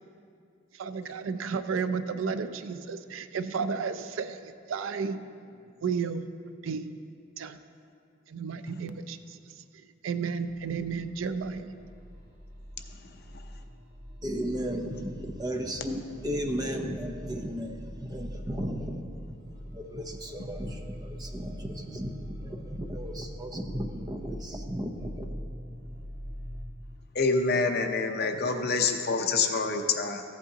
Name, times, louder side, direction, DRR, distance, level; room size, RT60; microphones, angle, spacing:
voice 1, 0.7-5.3 5.8-6.3 6.6-6.9 7.4-7.6 8.3-9.4 10.0-11.7, right 5 dB, 85° right, 11 dB, 0.4 m, -32 dB
sound 1, 10.4-26.6, equal, 50° right, 1.5 m, -43 dB
voice 2, 12.9-13.5 27.1-30.2, left 4 dB, 55° left, 5 dB, 0.7 m, -27 dB
voice 3, 14.2-19.1 19.7-25.3, equal, 20° right, 3 dB, 0.7 m, -35 dB
14.5 x 8.2 x 2.8 m, 2.4 s
head